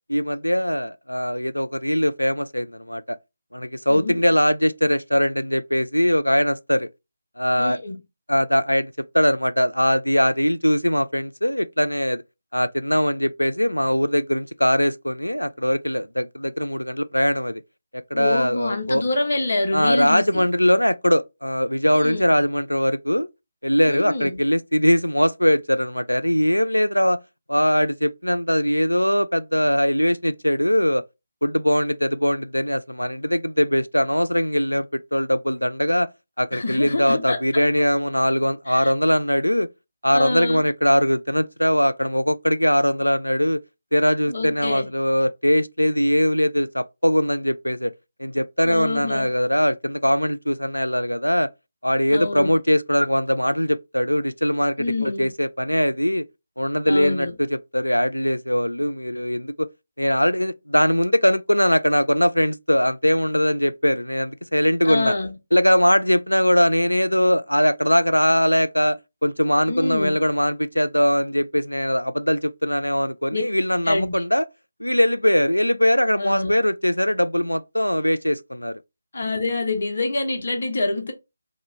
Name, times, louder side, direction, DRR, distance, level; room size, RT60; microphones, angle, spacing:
voice 1, 0.1-3.2 3.5-6.9 7.4-7.8 8.3-12.2 12.5-17.6 18.1-19.0 19.7-23.3 23.6-27.2 27.5-31.0 31.4-36.1 36.4-39.7 40.0-43.6 43.9-47.9 48.2-51.5 51.8-56.2 56.6-59.7 60.0-65.1 65.5-74.4 74.8-78.8, equal, 85° left, 0.3 m, -21 dB
voice 2, 3.9-4.2 7.6-8.0 18.1-20.5 21.9-22.3 23.9-24.4 36.5-37.6 38.7-38.9 40.1-40.6 44.3-44.9 48.6-49.3 52.1-52.5 54.8-55.3 56.8-57.3 64.8-65.4 69.7-70.2 73.3-73.4 73.8-74.2 76.2-76.5 79.1-81.1, left 2 dB, 50° left, 0.9 m, -26 dB
2.9 x 2.4 x 3.0 m
figure-of-eight pair, 155°, 0 cm